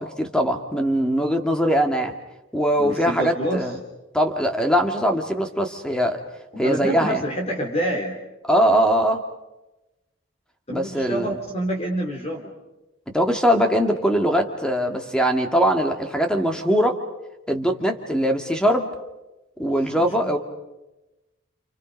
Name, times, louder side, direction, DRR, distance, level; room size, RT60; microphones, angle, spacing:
voice 1, 0.0-2.1 2.5-3.8 4.1-6.2 6.6-7.2 8.5-9.2 10.7-11.3 13.1-17.0 17.5-18.9 19.6-20.4, equal, 5° left, 4 dB, 2.1 m, -21 dB
voice 2, 2.8-3.7 6.5-8.2 10.7-12.5 20.0-20.4, equal, 30° left, 0 dB, 3.4 m, -27 dB
29.5 x 28.5 x 5.3 m, 1.0 s
head